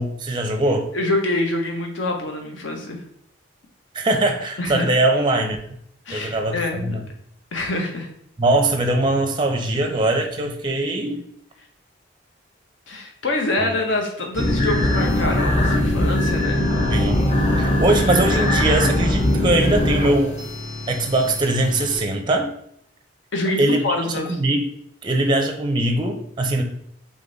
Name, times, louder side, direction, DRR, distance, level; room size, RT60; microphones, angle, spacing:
voice 1, 0.0-0.9 3.9-5.6 6.1-7.0 8.4-11.2 13.6-13.7 16.9-17.3 17.6-20.4 20.9-22.5 23.6-24.0 24.4-24.6 25.0-26.6, right 2 dB, 25° right, 4 dB, 0.5 m, -21 dB
voice 2, 0.9-3.0 4.6-5.0 6.1-7.0 7.5-8.1 12.9-16.7 23.3-24.4, left 2 dB, 70° left, 2 dB, 0.8 m, -25 dB
sound 1, 14.3-22.0, left 1 dB, 35° left, 1.0 m, -21 dB
3.7 x 3.6 x 3.9 m, 0.70 s
head